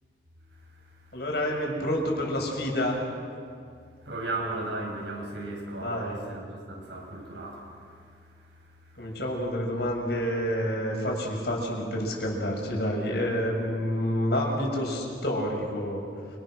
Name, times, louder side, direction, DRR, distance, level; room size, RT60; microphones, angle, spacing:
voice 1, 0.5-1.2 4.0-9.2, right 2 dB, 85° right, -1 dB, 7.8 m, -37 dB
voice 2, 1.1-3.0 5.8-6.2 9.0-16.0, equal, 65° left, -1 dB, 6.8 m, -28 dB
29.0 x 27.0 x 6.6 m, 2.3 s
head